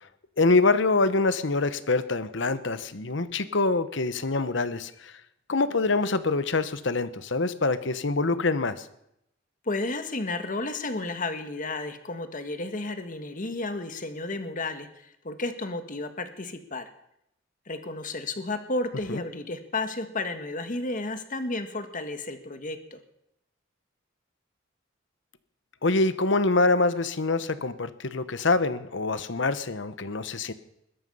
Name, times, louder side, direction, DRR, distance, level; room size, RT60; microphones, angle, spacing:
voice 1, 0.4-5.1 5.5-8.9 19.1-19.2 25.8-30.5, left 3 dB, 65° left, 13 dB, 1.1 m, -25 dB
voice 2, 9.6-16.8 17.7-23.0, left 2 dB, 45° left, 8 dB, 1.7 m, -32 dB
21.0 x 11.5 x 5.6 m, 0.78 s
head